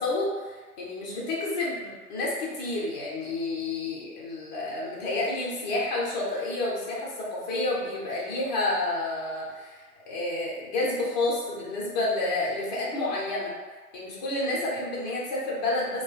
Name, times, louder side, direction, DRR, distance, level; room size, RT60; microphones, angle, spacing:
voice 1, 0.0-13.5 13.9-16.0, left 2 dB, 30° left, -5 dB, 0.6 m, -30 dB
2.2 x 2.0 x 3.1 m, 1.4 s
figure-of-eight pair, 115°, 46 cm